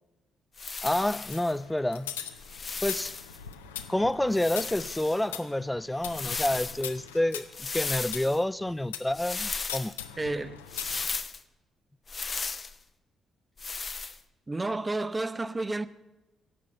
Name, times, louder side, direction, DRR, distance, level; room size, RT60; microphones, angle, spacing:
sound 1, 0.6-1.5 2.4-3.4 4.3-5.2 6.0-6.8 7.5-8.4 9.1-9.9 10.7-11.4 12.1-12.7 13.6-14.2, left 4 dB, 35° left, 0.7 m, -35 dB
voice 1, 0.8-2.2 2.8-3.2 3.9-9.9, left 1 dB, 10° left, 0.4 m, -28 dB
sound 2, 1.3-9.2 9.7-11.1, left 9 dB, 80° left, 0.7 m, -42 dB
voice 2, 10.2-10.6 14.5-15.9, right 2 dB, 25° right, 0.7 m, -31 dB
17.5 x 7.5 x 7.8 m
figure-of-eight pair, 40°, 0 cm